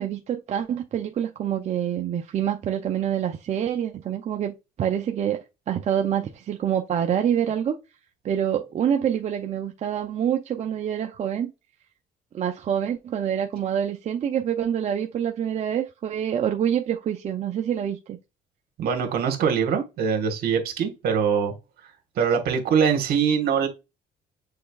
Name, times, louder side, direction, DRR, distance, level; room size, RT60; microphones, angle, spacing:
voice 1, 0.0-7.7 8.2-11.5 12.3-18.2, right 9 dB, 40° right, 0.5 m, -26 dB
voice 2, 18.8-21.5 22.2-23.7, right 7 dB, 65° right, 1.4 m, -23 dB
6.6 x 3.4 x 2.3 m
cardioid pair, 110°, 17 cm